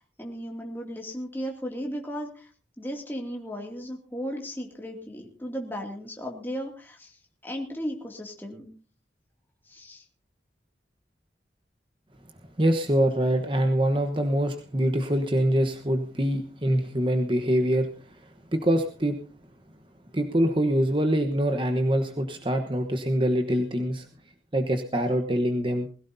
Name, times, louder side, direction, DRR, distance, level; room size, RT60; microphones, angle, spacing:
voice 1, 0.0-2.5 2.8-7.2 7.4-8.7 9.7-10.0, equal, 10° left, 0 dB, 2.5 m, -35 dB
voice 2, 12.6-18.2 18.5-19.2 20.1-24.1 24.5-25.9, equal, 30° right, 6 dB, 1.2 m, -24 dB
21.5 x 16.5 x 2.7 m, 0.38 s
head